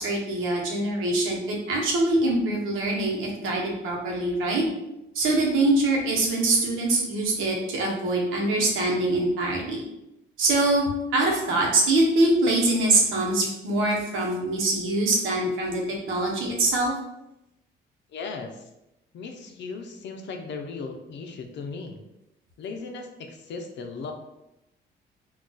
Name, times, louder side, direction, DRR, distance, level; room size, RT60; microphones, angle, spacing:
voice 1, 0.0-4.6 5.1-9.8 10.4-10.8 11.1-16.9, right 2 dB, 85° right, -1 dB, 0.8 m, -24 dB
voice 2, 18.1-18.7 19.1-22.0 22.6-24.1, left 4 dB, 65° left, 4 dB, 0.5 m, -37 dB
2.3 x 2.2 x 3.8 m, 0.89 s
cardioid pair, 90°, 20 cm